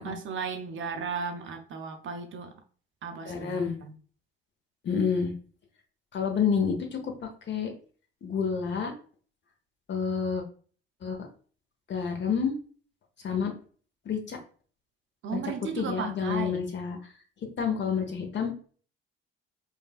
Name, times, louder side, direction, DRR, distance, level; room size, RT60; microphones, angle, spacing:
voice 1, 0.0-2.6 3.0-3.9 15.2-16.6, right 5 dB, 45° right, 0.7 m, -35 dB
voice 2, 3.3-3.8 4.8-5.3 6.1-7.7 8.2-8.9 9.9-10.4 11.0-11.3 11.9-12.5 13.2-13.5 14.0-14.4 15.3-15.4 15.8-17.0 17.6-18.5, left 6 dB, 40° left, 0.9 m, -29 dB
5.0 x 2.2 x 2.4 m
figure-of-eight pair, 50°, 29 cm